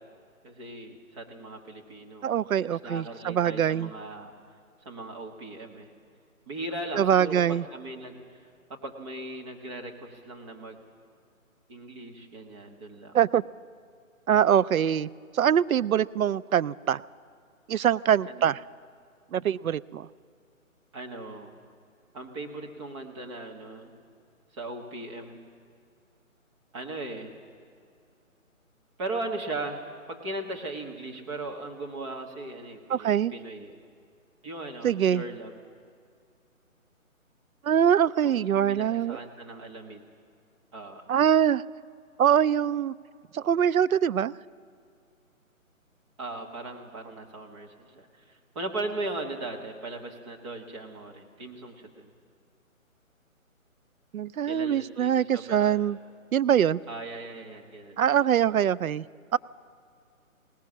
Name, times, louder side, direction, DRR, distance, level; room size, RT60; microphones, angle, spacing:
voice 1, 0.4-2.3 2.7-4.3 4.8-5.9 6.5-8.2 8.7-10.8 11.7-13.2 18.3-18.5 20.9-21.5 22.1-23.9 24.5-25.4 26.7-27.3 29.0-29.8 30.1-33.8 34.4-35.5 38.2-40.0 40.7-41.0 46.2-52.1 54.4-55.8 56.9-58.0, right 2 dB, 20° right, 1 dB, 1.5 m, -38 dB
voice 2, 2.2-3.9 6.9-7.6 13.1-13.4 14.3-17.0 17.7-18.6 19.3-20.1 32.9-33.3 34.8-35.2 37.6-39.2 41.1-41.6 42.2-42.9 43.3-44.3 54.1-56.0 56.3-56.8 58.0-59.1 59.3-59.4, right 9 dB, 75° right, 17 dB, 0.5 m, -23 dB
20.0 x 19.0 x 7.3 m, 2.4 s
figure-of-eight pair, 155°, 42 cm